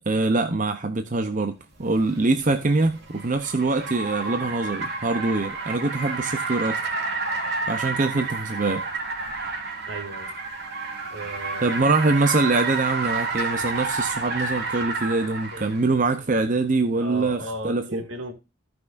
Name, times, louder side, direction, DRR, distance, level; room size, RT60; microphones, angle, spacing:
voice 1, 0.1-1.5 1.8-6.8 7.7-8.8 11.6-18.0, right 3 dB, 40° right, 0.7 m, -24 dB
Car, 1.9-15.8, right 3 dB, 55° right, 2.7 m, -30 dB
voice 2, 9.9-10.3 11.1-11.7 15.5-16.0 17.0-18.3, right 1 dB, 80° right, 2.3 m, -36 dB
15.5 x 6.0 x 2.5 m
head